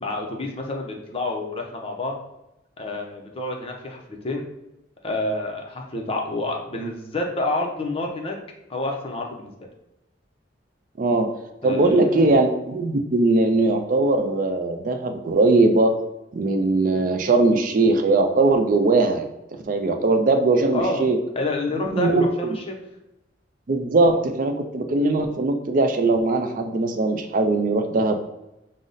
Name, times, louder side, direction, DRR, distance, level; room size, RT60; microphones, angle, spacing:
voice 1, 0.0-2.2 2.8-4.4 5.0-8.4 8.7-9.5 11.6-12.3 20.7-21.0 21.4-22.8, left 2 dB, 30° left, 1 dB, 0.6 m, -28 dB
voice 2, 11.0-11.3 11.6-15.9 16.3-19.3 19.7-21.2 21.9-22.6 23.7-28.2, right 2 dB, 45° right, 6 dB, 0.4 m, -20 dB
5.2 x 2.0 x 3.8 m, 0.91 s
head